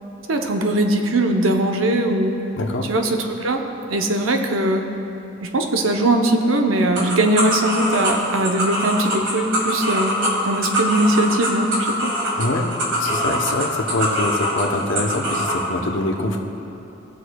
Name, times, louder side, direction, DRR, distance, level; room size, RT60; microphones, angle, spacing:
voice 1, 0.3-2.3 2.8-3.6 3.9-4.8 5.4-10.2 10.4-12.1, right 1 dB, 90° right, 4 dB, 0.7 m, -20 dB
voice 2, 2.6-2.9 12.4-16.4, left 2 dB, 70° left, 2 dB, 0.8 m, -24 dB
sound 1, 6.9-15.6, equal, 65° right, 1.8 m, -23 dB
18.5 x 6.4 x 2.3 m, 3.0 s
head